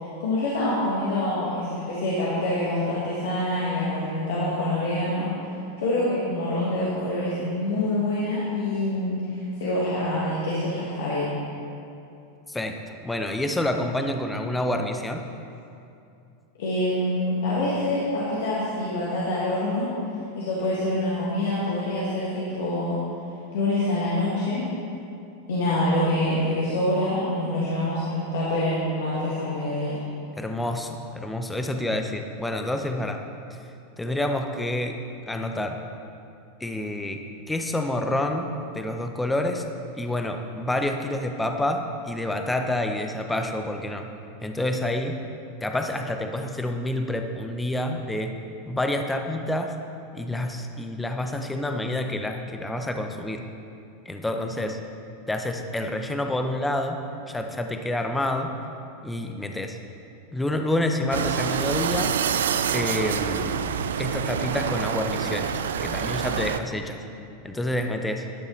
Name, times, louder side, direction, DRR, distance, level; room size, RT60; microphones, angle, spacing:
voice 1, 0.2-5.3 5.8-11.3 16.6-19.9 20.3-23.0 23.5-24.7 25.5-30.0, left 1 dB, 75° left, -8 dB, 1.7 m, -26 dB
voice 2, 13.0-15.2 30.4-33.2 34.0-35.0 35.3-35.8 36.6-37.2 37.5-39.6 40.0-44.1 44.4-45.2 45.6-48.3 48.7-49.7 50.1-53.4 54.1-54.8 55.3-57.0 57.3-58.5 59.0-59.8 60.3-62.1 62.7-67.0 67.4-68.2, left 1 dB, 10° left, 5 dB, 0.7 m, -28 dB
sound 1, 61.1-66.6, right 7 dB, 80° right, 0.3 m, -27 dB
12.0 x 6.6 x 3.2 m, 2.6 s
hypercardioid pair, 95°, 0 cm